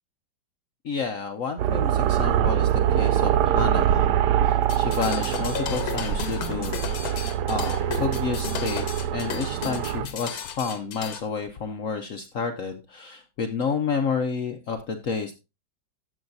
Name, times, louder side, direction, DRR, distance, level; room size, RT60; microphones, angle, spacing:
voice 1, 0.8-4.1 4.4-6.8 7.5-8.8 9.1-15.4, left 5 dB, 65° left, 7 dB, 0.8 m, -30 dB
sound 1, 1.6-10.1, right 10 dB, 70° right, 1.0 m, -24 dB
sound 2, 4.6-11.2, left 9 dB, 85° left, 1.8 m, -34 dB
12.5 x 7.3 x 2.6 m, 0.27 s
omnidirectional pair, 2.2 m